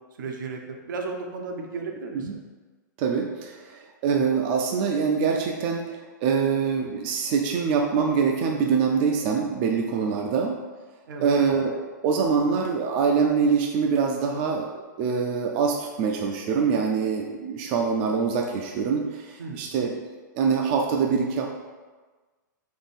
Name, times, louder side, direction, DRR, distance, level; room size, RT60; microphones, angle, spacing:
voice 1, 0.2-2.3 11.1-11.4 19.4-19.6, right 4 dB, 75° right, 2 dB, 0.7 m, -34 dB
voice 2, 3.0-10.6 11.2-11.8 12.0-14.7 15.0-20.0 20.4-21.5, right 5 dB, 35° right, 1 dB, 0.4 m, -24 dB
3.6 x 2.6 x 4.1 m, 1.3 s
hypercardioid pair, 150°, 10 cm